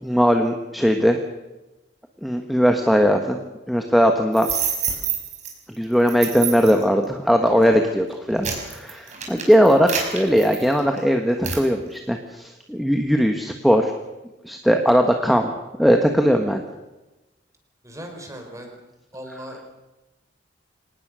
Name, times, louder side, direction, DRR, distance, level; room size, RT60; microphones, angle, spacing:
voice 1, 0.0-1.2 2.2-3.4 3.7-4.5 5.8-13.9 14.4-15.5 15.8-16.6, equal, ahead, 4 dB, 1.4 m, -19 dB
sound 1, 4.3-5.5 6.1-6.8 7.5-7.7 8.1-11.0 11.4-11.7, right 7 dB, 40° right, 5.2 m, -27 dB
voice 2, 17.8-18.8 19.1-19.7, equal, 15° right, 4 dB, 4.6 m, -38 dB
25.5 x 19.5 x 6.3 m, 1.1 s
head